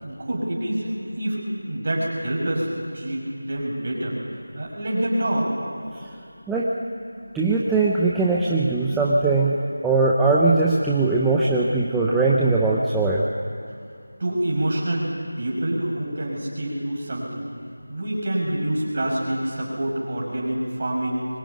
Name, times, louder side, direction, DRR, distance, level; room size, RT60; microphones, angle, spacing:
voice 1, 0.0-4.2 4.5-5.5 14.2-15.1 15.4-17.4 17.9-21.3, right 1 dB, 25° right, -3 dB, 6.1 m, -26 dB
voice 2, 7.3-9.6 9.8-13.2, right 3 dB, 5° right, -6 dB, 0.8 m, -20 dB
24.0 x 20.0 x 9.5 m, 2.4 s
figure-of-eight pair, 175°, 0 cm